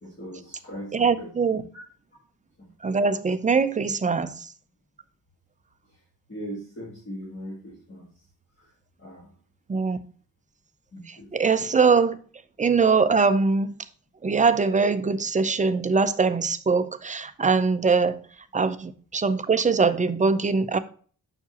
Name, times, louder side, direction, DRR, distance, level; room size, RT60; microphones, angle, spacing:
voice 1, 0.0-1.3 2.6-2.7 6.3-8.0 9.0-9.3 10.9-11.3, equal, 35° left, 1.6 m, -39 dB
voice 2, 0.9-1.6 2.8-4.5 9.7-10.0 11.1-12.2 12.6-13.7 14.2-18.2 18.5-20.8, right 4 dB, 20° right, 0.4 m, -22 dB
7.1 x 5.8 x 2.8 m
wide cardioid pair, 145°, 36 cm